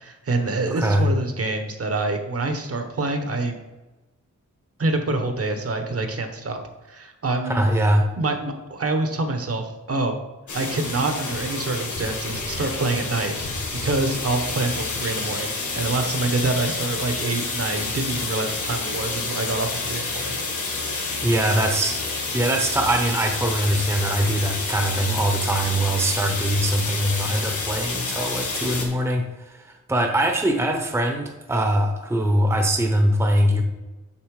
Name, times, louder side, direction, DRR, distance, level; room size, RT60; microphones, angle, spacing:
voice 1, 0.0-3.6 4.8-6.6 6.9-7.6 8.2-10.2 10.5-13.4 13.8-20.3, right 2 dB, 50° right, 6 dB, 1.2 m, -26 dB
voice 2, 0.7-1.1 7.4-8.1 21.2-22.0 22.3-33.6, right 1 dB, 10° right, 4 dB, 0.8 m, -22 dB
sound 1, 10.5-28.9, left 3 dB, 70° left, 1.9 m, -29 dB
7.3 x 6.3 x 4.8 m, 1.1 s
wide cardioid pair, 140°, 31 cm